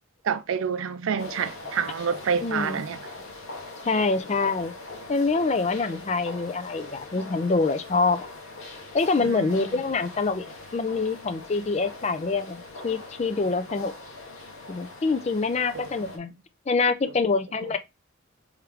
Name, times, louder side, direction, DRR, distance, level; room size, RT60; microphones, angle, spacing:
voice 1, 0.2-3.0 9.2-9.8 10.4-10.5 15.7-16.1, right 6 dB, 75° right, 0.4 m, -29 dB
sound 1, 1.2-16.2, left 2 dB, 80° left, 1.0 m, -41 dB
voice 2, 2.4-2.8 3.8-4.7 5.1-8.3 8.9-13.9 14.7-16.3 16.7-17.8, left 4 dB, 30° left, 0.3 m, -25 dB
3.5 x 3.4 x 3.0 m
head